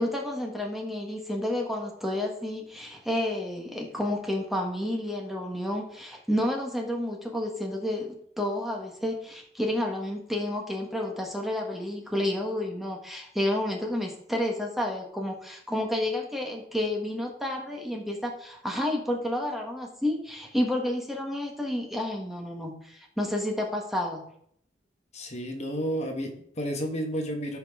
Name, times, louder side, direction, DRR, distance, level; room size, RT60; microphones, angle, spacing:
voice 1, 0.0-24.2, left 1 dB, ahead, 1 dB, 1.3 m, -30 dB
voice 2, 25.1-27.6, equal, 40° left, 3 dB, 1.5 m, -31 dB
14.0 x 5.3 x 3.7 m, 0.67 s
head